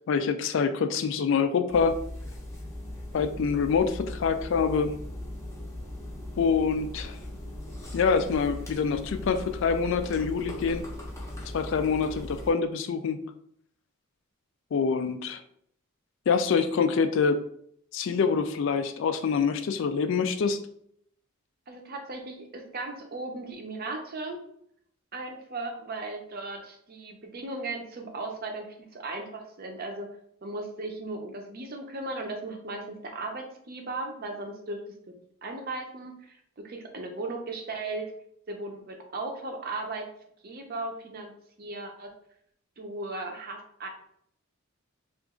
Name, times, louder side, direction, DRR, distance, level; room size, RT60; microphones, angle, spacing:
voice 1, 0.1-2.0 3.1-4.9 6.4-7.2 7.9-10.9 11.5-13.2 14.7-15.4 16.3-17.4 17.9-20.6, left 5 dB, 60° left, 9 dB, 0.3 m, -25 dB
sound 1, 1.7-12.5, left 1 dB, 15° left, 0.6 m, -39 dB
voice 2, 21.7-24.4 25.1-30.1 30.4-34.8 35.4-38.1 38.5-40.1 40.4-41.3 41.6-42.1 42.8-43.9, right 2 dB, 45° right, 3 dB, 0.6 m, -37 dB
2.9 x 2.4 x 3.6 m, 0.69 s
head